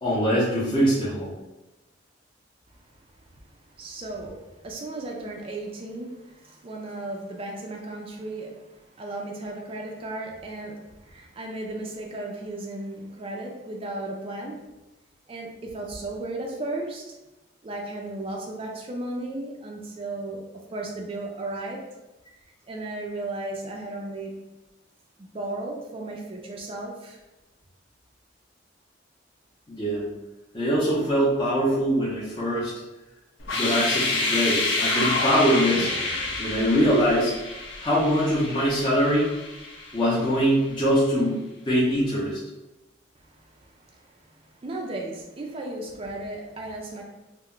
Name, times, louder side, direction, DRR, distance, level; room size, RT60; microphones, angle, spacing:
voice 1, 0.0-1.3 29.7-30.0 30.5-32.7 33.5-35.9 36.4-37.3 37.8-39.3 39.9-42.4, equal, 25° left, -8 dB, 0.6 m, -23 dB
voice 2, 2.7-3.0 3.3-3.4 3.7-14.6 15.3-17.2 17.6-21.8 22.7-24.3 25.2-27.2 43.2-47.0, right 2 dB, 30° right, 0 dB, 0.3 m, -35 dB
sound 1, 33.4-40.3, left 3 dB, 85° left, 0.5 m, -28 dB
2.2 x 2.0 x 3.6 m, 1.0 s
head